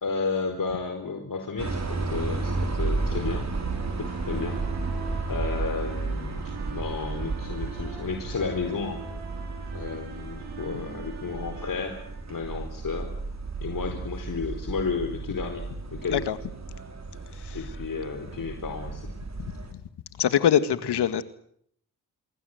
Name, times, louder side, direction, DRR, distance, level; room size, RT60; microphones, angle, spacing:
voice 1, 0.0-3.5 4.0-4.6 5.3-9.0 9.7-12.0 12.3-13.2 13.6-16.3 17.5-19.1, left 4 dB, 50° left, 5 dB, 4.5 m, -32 dB
sound 1, 1.6-19.7, right 3 dB, 40° right, 5.8 m, -33 dB
sound 2, 3.6-12.6, right 5 dB, 70° right, 7.1 m, -43 dB
voice 2, 20.2-21.2, left 9 dB, 70° left, 12 dB, 2.0 m, -23 dB
27.0 x 23.0 x 8.0 m, 0.68 s
supercardioid pair, 50°, 41 cm